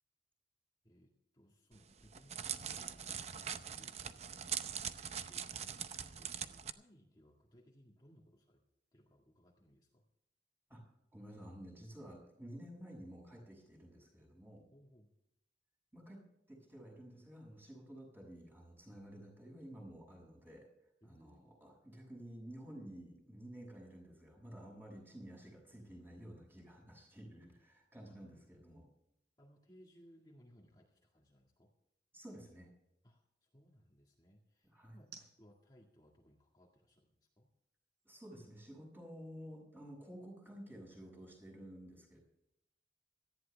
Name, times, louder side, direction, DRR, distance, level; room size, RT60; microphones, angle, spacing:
voice 1, 0.8-5.9 6.2-8.6 8.9-10.0 14.7-15.1 21.0-21.5 28.1-28.5 29.4-31.7 33.0-37.5, equal, 25° left, -2 dB, 1.9 m, -65 dB
Crackle, 1.7-6.7, right 8 dB, 35° right, 0.7 m, -42 dB
voice 2, 11.1-14.6 15.9-16.2 16.5-20.7 21.0-28.9 32.1-32.7 34.6-35.0 38.0-42.2, equal, 10° right, -1 dB, 6.5 m, -52 dB
sound 1, 25.3-39.5, right 6 dB, 65° right, 4.9 m, -69 dB
18.5 x 14.5 x 3.5 m, 0.82 s
head